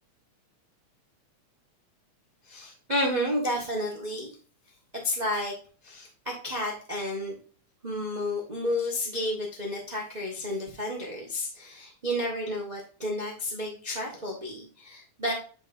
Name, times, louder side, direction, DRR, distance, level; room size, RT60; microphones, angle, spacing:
voice 1, 2.4-4.3 4.9-5.6 5.8-7.3 7.8-15.3, left 1 dB, 20° right, -1 dB, 1.0 m, -31 dB
9.6 x 4.6 x 2.6 m, 0.39 s
omnidirectional pair, 3.4 m